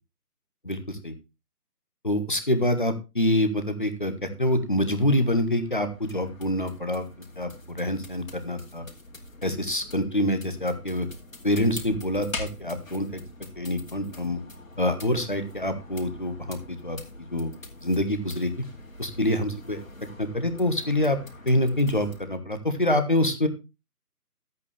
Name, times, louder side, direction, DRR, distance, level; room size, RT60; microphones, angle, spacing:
voice 1, 0.6-1.1 2.0-7.1 7.4-8.8 9.4-11.1 11.4-13.2 13.6-14.4 14.8-17.0 17.3-17.5 17.8-18.5 19.0-19.8 20.2-21.2 21.5-23.5, left 1 dB, 30° left, 8 dB, 1.2 m, -26 dB
sound 1, 3.9-22.3, left 2 dB, 55° left, 2.7 m, -44 dB
13.0 x 8.3 x 3.3 m, 0.27 s
figure-of-eight pair, 175°, 47 cm